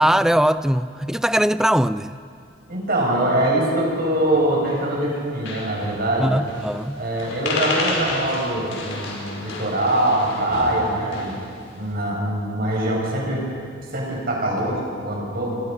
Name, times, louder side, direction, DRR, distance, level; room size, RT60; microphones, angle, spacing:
voice 1, 0.0-2.1 6.2-7.0, equal, 5° right, 0.5 m, -20 dB
voice 2, 2.7-6.3 7.0-11.4 11.8-13.4 13.9-15.6, right 1 dB, 50° right, 7.1 m, -23 dB
sound 1, 4.3-4.9 5.2-5.3 5.5-6.0 6.5-6.8 7.1-11.5, left 2 dB, 70° left, 5.5 m, -30 dB
29.5 x 24.0 x 5.5 m
head